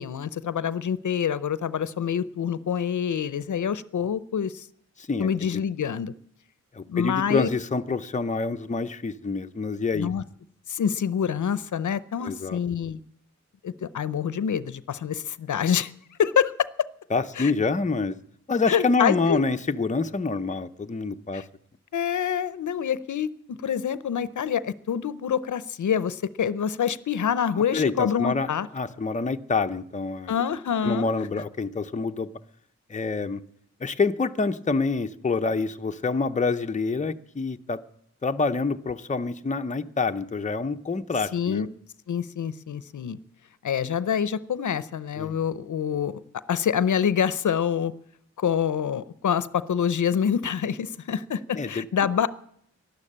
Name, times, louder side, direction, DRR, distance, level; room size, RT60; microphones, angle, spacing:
voice 1, 0.0-4.7 5.2-6.1 6.9-7.5 9.9-10.2 10.7-13.0 13.6-15.9 16.2-16.5 17.4-17.5 18.7-19.4 21.3-21.4 21.9-28.7 30.3-31.1 41.3-41.7 42.1-43.2 43.6-46.2 46.5-47.9 48.4-52.3, left 8 dB, 80° left, 17 dB, 0.6 m, -26 dB
voice 2, 5.0-5.6 6.7-10.1 12.2-12.6 17.1-18.2 18.5-21.4 27.7-30.4 30.8-32.3 32.9-33.4 33.8-37.8 38.2-41.7 45.2-45.4 51.5-51.8, left 4 dB, 25° left, 8 dB, 0.6 m, -27 dB
12.0 x 12.0 x 8.6 m, 0.68 s
wide cardioid pair, 125°, 29 cm